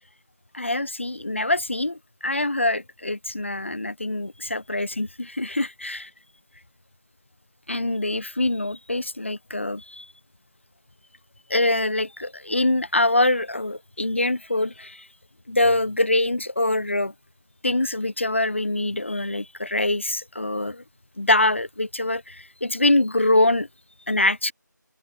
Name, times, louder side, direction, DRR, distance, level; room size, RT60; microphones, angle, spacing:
voice 1, 0.5-6.1 7.7-10.1 11.5-15.1 15.5-17.1 17.6-20.8 21.2-23.7 24.1-24.5, left 2 dB, 40° left, 5.5 m, -24 dB
figure-of-eight pair, 175°, 10 cm